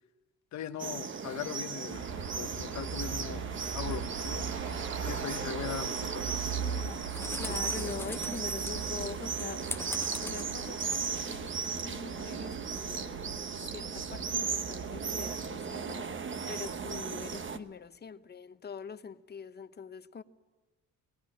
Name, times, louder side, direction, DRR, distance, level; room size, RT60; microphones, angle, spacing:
voice 1, 0.5-2.1 2.3-3.5 3.7-4.5 5.0-6.7, left 10 dB, 65° left, 0.9 m, -40 dB
sound 1, 0.8-17.6, right 6 dB, 40° right, 1.1 m, -36 dB
sound 2, 1.9-17.5, right 6 dB, 75° right, 1.8 m, -41 dB
sound 3, 6.6-11.6, left 2 dB, 10° left, 0.6 m, -43 dB
voice 2, 7.3-10.9 11.2-16.1 16.5-20.2, left 6 dB, 35° left, 0.9 m, -44 dB
19.5 x 16.0 x 8.8 m
cardioid pair, 90°, 30 cm